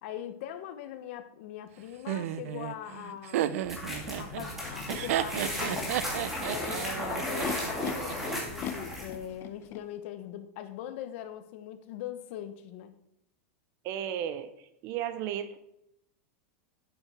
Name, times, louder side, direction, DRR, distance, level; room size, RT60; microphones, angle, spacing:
voice 1, 0.0-3.5 4.2-5.9 6.5-12.9, left 11 dB, 55° left, 10 dB, 1.1 m, -41 dB
Laughter, 2.1-8.1, right 11 dB, 70° right, 0.7 m, -33 dB
sound 1, 3.6-9.2, left 1 dB, 5° right, 2.6 m, -35 dB
Animal, 4.0-4.1 4.9-5.4 6.3-7.9 8.6-9.8, left 10 dB, 30° left, 0.8 m, -40 dB
voice 2, 13.8-14.5 14.8-15.6, right 10 dB, 40° right, 12 dB, 0.8 m, -33 dB
10.5 x 7.9 x 5.1 m, 0.78 s
supercardioid pair, 155°, 8 cm